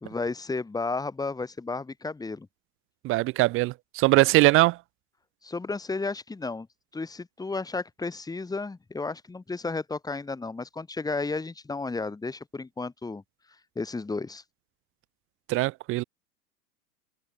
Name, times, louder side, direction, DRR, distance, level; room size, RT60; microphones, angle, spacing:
voice 1, 0.0-2.5 5.4-6.7 6.9-13.2 13.8-14.4, left 3 dB, 10° left, 1.9 m, -33 dB
voice 2, 3.0-4.8 15.5-16.0, right 19 dB, 25° right, 0.6 m, -21 dB
hypercardioid pair, 100°, 47 cm